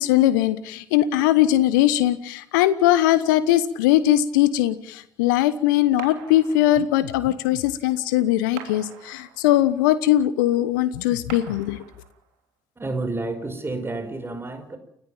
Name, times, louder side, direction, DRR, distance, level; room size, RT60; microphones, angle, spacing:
voice 1, 0.0-11.8, left 13 dB, 75° left, 15 dB, 1.2 m, -20 dB
sound 1, 6.0-7.1 8.6-9.7 11.3-12.3, right 10 dB, 75° right, 2.9 m, -43 dB
voice 2, 12.8-14.8, right 2 dB, 20° right, 9 dB, 5.5 m, -30 dB
30.0 x 14.5 x 7.3 m, 0.70 s
figure-of-eight pair, 50°, 11 cm